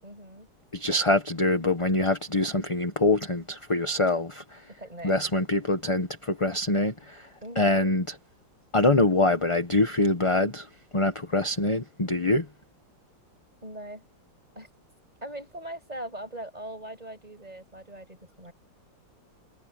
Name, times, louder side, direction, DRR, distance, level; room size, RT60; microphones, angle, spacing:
voice 1, 0.0-0.5 4.8-5.2 7.4-7.9 13.6-14.0 14.5-14.7 15.2-18.5, right 1 dB, 20° right, 6.8 m, -40 dB
voice 2, 0.7-4.4 5.0-7.2 7.6-8.1 8.7-10.7 10.9-12.5, left 2 dB, 20° left, 1.1 m, -24 dB
omnidirectional pair, 2.1 m